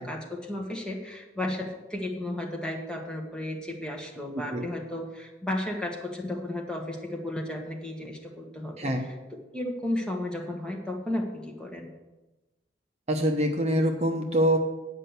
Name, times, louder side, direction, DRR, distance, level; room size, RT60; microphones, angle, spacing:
voice 1, 0.0-8.9 9.5-11.9, left 1 dB, 5° left, 0 dB, 1.3 m, -33 dB
voice 2, 13.1-14.6, equal, 35° right, 3 dB, 1.0 m, -25 dB
9.8 x 5.5 x 8.1 m, 1.1 s
head